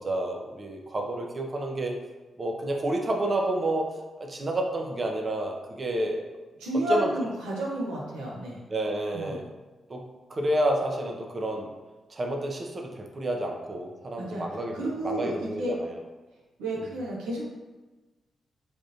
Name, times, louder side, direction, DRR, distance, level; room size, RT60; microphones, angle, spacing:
voice 1, 0.0-2.0 2.4-3.9 4.2-6.2 6.9-7.1 8.7-9.4 9.9-10.0 10.3-11.7 12.1-15.9, right 1 dB, 45° right, 1 dB, 0.6 m, -29 dB
voice 2, 6.6-8.6 9.1-9.4 14.2-14.4 14.7-15.7 16.6-17.5, right 1 dB, 90° right, -4 dB, 0.7 m, -31 dB
3.5 x 2.5 x 2.7 m, 1.2 s
supercardioid pair, 45°, 0 cm